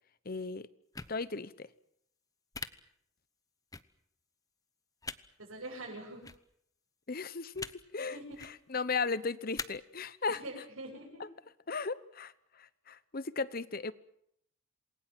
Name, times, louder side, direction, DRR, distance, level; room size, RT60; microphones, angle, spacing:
voice 1, 0.2-0.7 1.1-1.7 7.1-10.4 11.2-11.3 11.7-13.9, left 4 dB, 45° left, 17 dB, 1.0 m, -36 dB
sound 1, 0.9-1.1 2.5-2.7 3.7-3.8 5.0-5.2 6.2-6.4 7.5-7.7 8.3-8.5 9.6-9.7, left 4 dB, 15° left, 0.9 m, -40 dB
voice 2, 5.4-6.2 8.0-8.4 10.3-11.2, right 1 dB, 90° right, -5 dB, 7.7 m, -44 dB
28.0 x 21.0 x 7.7 m, 0.72 s
head